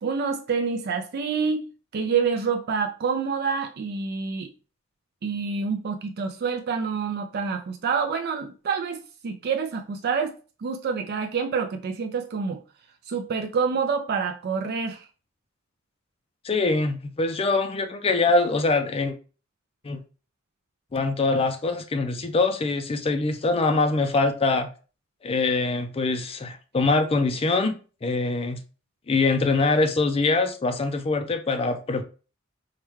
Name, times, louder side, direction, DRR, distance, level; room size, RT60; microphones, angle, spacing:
voice 1, 0.0-4.5 5.2-10.3 10.6-12.6 13.1-15.1, right 5 dB, 50° right, 0.4 m, -27 dB
voice 2, 16.4-19.1 19.8-20.0 20.9-24.7 25.2-27.7 28.0-28.6 29.1-32.0, left 3 dB, 30° left, 0.4 m, -23 dB
4.7 x 2.2 x 3.0 m
head